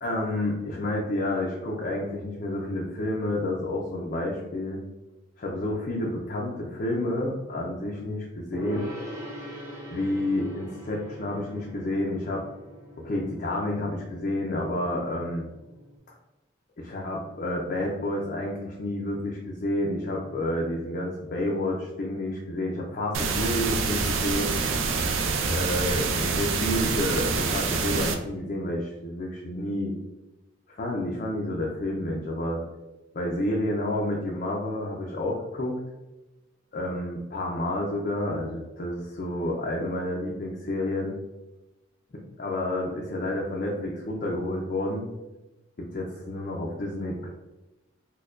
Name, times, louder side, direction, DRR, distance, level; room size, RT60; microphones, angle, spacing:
voice 1, 0.0-4.8 5.4-8.9 9.9-12.4 13.0-15.5 16.8-24.6 25.5-29.9 30.7-32.6 33.1-35.7 36.7-41.1 42.4-45.0 45.8-47.3, left 1 dB, 45° left, -2 dB, 0.4 m, -30 dB
Gong, 8.5-16.0, equal, 15° right, 0.6 m, -42 dB
sound 1, 23.1-28.1, right 4 dB, 85° right, 0.4 m, -26 dB
4.3 x 2.2 x 2.4 m, 1.1 s
head